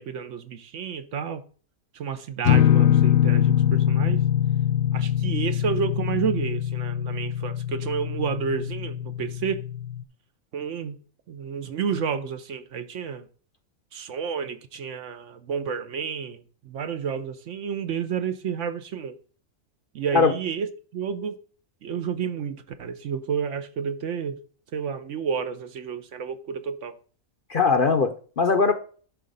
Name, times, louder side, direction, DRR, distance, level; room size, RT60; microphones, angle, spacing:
voice 1, 0.0-1.4 1.9-4.2 4.9-9.6 10.5-11.0 11.3-13.2 13.9-19.2 19.9-20.7 20.9-21.4 21.8-24.4 24.7-26.9, right 7 dB, 65° right, 1.0 m, -30 dB
sound 1, 2.4-10.0, left 10 dB, 75° left, 1.0 m, -23 dB
voice 2, 27.5-28.7, left 4 dB, 50° left, 0.7 m, -20 dB
10.5 x 3.8 x 5.3 m
omnidirectional pair, 1.4 m